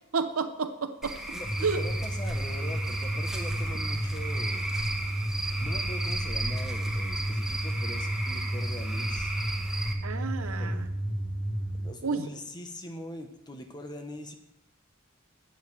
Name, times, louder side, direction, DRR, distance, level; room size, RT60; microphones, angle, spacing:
voice 1, 0.1-1.2 1.6-1.8 10.0-10.9 12.0-12.3, right 4 dB, 85° right, 9 dB, 0.8 m, -30 dB
Cricket / Frog, 1.0-9.9, right 1 dB, ahead, 1.0 m, -35 dB
voice 2, 1.3-4.7 5.6-9.3 10.4-10.8 11.8-14.4, left 1 dB, 20° left, 5 dB, 0.9 m, -42 dB
sound 1, 1.4-11.9, right 1 dB, 45° left, 2.9 m, -32 dB
12.5 x 8.9 x 3.3 m, 0.85 s
head